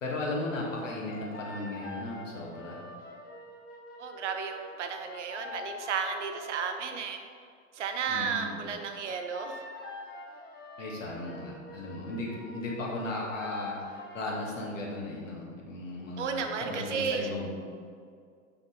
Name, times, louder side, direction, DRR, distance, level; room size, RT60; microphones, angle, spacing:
voice 1, 0.0-2.8 8.1-8.6 10.8-17.5, left 2 dB, 65° left, -2 dB, 1.7 m, -36 dB
sound 1, 0.6-6.8 8.6-14.8, left 2 dB, 25° left, 1.0 m, -45 dB
voice 2, 4.0-7.2 7.7-9.6 16.2-17.3, right 6 dB, 60° right, 6 dB, 0.8 m, -33 dB
6.0 x 5.8 x 4.2 m, 2.1 s
figure-of-eight pair, 90°, 41 cm